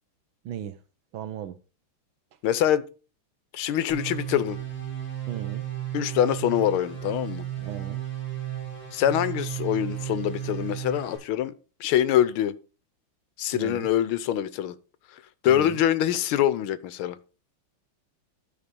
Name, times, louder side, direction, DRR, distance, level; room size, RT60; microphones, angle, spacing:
voice 1, 0.4-0.8 1.1-1.6 5.3-5.7 7.6-8.0 13.5-13.9 15.5-15.8, right 9 dB, 75° right, 1.5 m, -36 dB
voice 2, 2.4-2.8 3.5-4.6 5.9-7.5 8.9-11.5 11.8-12.6 13.4-14.8 15.4-17.2, left 11 dB, 80° left, 1.6 m, -24 dB
sound 1, 3.9-11.2, right 11 dB, 15° left, 5.4 m, -34 dB
12.5 x 4.9 x 5.2 m
omnidirectional pair, 2.3 m